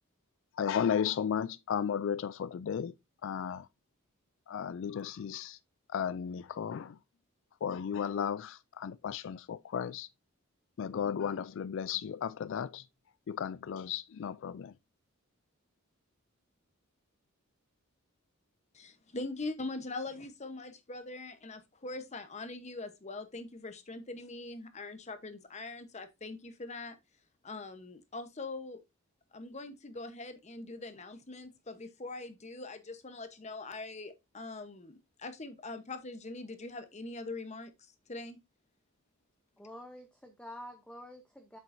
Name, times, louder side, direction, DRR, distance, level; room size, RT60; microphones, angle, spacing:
voice 1, 0.6-2.9 3.2-3.7 4.5-5.6 5.9-6.9 7.6-10.1 10.8-12.8 13.3-14.7, left 8 dB, 60° left, 0.3 m, -34 dB
voice 2, 18.7-27.0 27.4-28.8 29.3-38.4, left 2 dB, 30° left, 1.0 m, -42 dB
voice 3, 39.6-41.6, left 1 dB, 5° left, 0.7 m, -48 dB
7.6 x 7.5 x 2.6 m
head